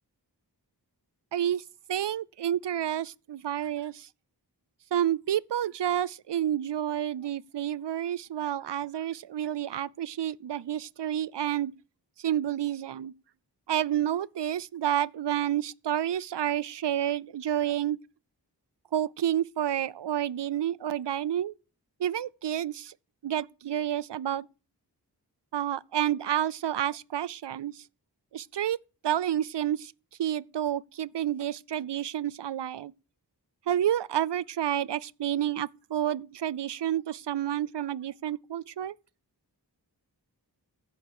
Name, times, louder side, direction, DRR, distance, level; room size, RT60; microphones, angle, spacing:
voice 1, 1.3-1.6 1.9-4.1 4.9-11.7 12.2-13.1 13.7-18.0 18.9-21.5 22.0-22.9 23.2-24.5 25.5-27.8 28.3-28.8 29.0-29.9 30.2-32.9 33.7-38.9, right 11 dB, 85° right, 0.5 m, -29 dB
15.5 x 6.8 x 4.8 m
wide cardioid pair, 50°, 41 cm